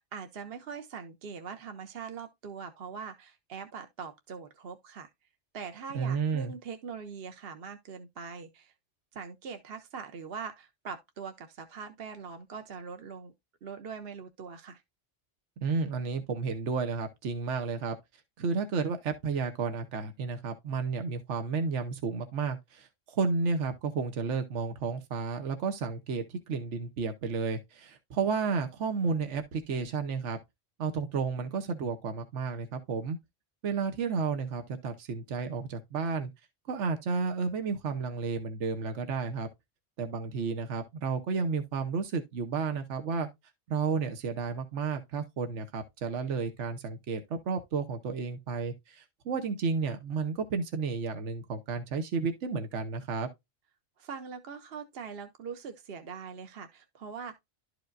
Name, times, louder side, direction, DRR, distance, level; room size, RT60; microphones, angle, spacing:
voice 1, 0.1-5.1 5.5-8.7 9.1-13.3 13.6-14.8 54.0-57.4, right 6 dB, 60° right, 1.0 m, -42 dB
voice 2, 5.9-6.5 15.6-18.0 18.4-30.4 30.8-33.2 33.6-36.3 36.7-39.5 40.0-43.3 43.7-53.3, right 5 dB, 80° right, 1.2 m, -32 dB
12.0 x 4.9 x 2.5 m
omnidirectional pair, 1.2 m